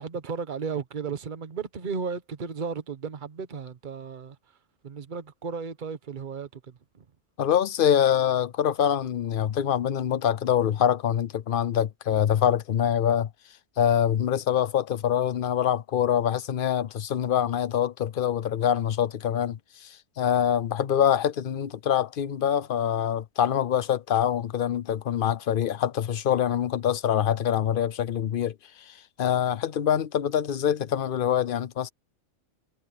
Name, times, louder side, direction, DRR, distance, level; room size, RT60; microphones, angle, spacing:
voice 1, 0.0-4.4 4.8-6.7, right 5 dB, 40° right, 1.1 m, -34 dB
voice 2, 7.4-13.3 13.8-28.5 28.9-31.9, left 9 dB, 50° left, 0.7 m, -25 dB
omnidirectional pair, 1.4 m